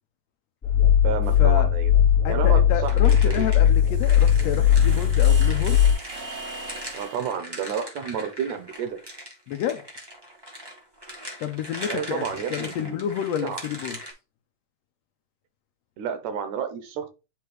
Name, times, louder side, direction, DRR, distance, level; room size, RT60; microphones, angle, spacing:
sound 1, 0.6-5.9, left 9 dB, 35° left, 1.0 m, -18 dB
voice 1, 1.0-1.9 2.3-3.5 6.9-9.0 11.9-13.1 13.4-13.6 16.0-17.1, right 7 dB, 75° right, 2.0 m, -31 dB
voice 2, 2.2-5.8 9.5-9.8 11.4-14.0, left 10 dB, 80° left, 1.6 m, -29 dB
sound 2, 2.8-14.1, equal, 40° right, 0.3 m, -40 dB
Heat Long, 3.5-7.3, right 3 dB, 60° right, 0.7 m, -39 dB
9.4 x 3.2 x 3.2 m
omnidirectional pair, 3.4 m